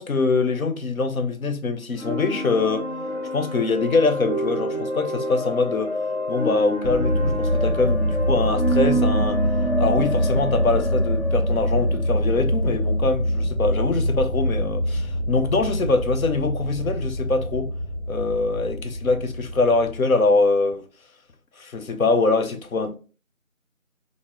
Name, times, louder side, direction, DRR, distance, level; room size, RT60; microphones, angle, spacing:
voice 1, 0.0-2.9 3.3-6.0 6.3-9.5 9.8-17.7 18.1-20.8 21.6-22.9, left 3 dB, 80° left, 0.7 m, -23 dB
sound 1, 2.0-13.6, right 1 dB, 50° left, 0.8 m, -28 dB
sound 2, 6.8-20.0, equal, 30° left, 1.2 m, -25 dB
3.5 x 2.0 x 2.9 m
figure-of-eight pair, 175°, 41 cm